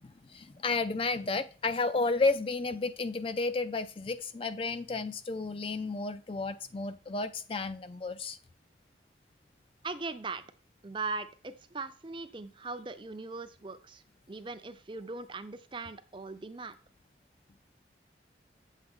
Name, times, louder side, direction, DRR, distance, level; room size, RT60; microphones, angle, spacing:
voice 1, 0.0-8.4, left 3 dB, 30° left, 0.4 m, -32 dB
voice 2, 9.8-10.4 10.8-14.0 14.3-16.8, right 3 dB, 30° right, 0.6 m, -39 dB
8.6 x 7.3 x 3.7 m
head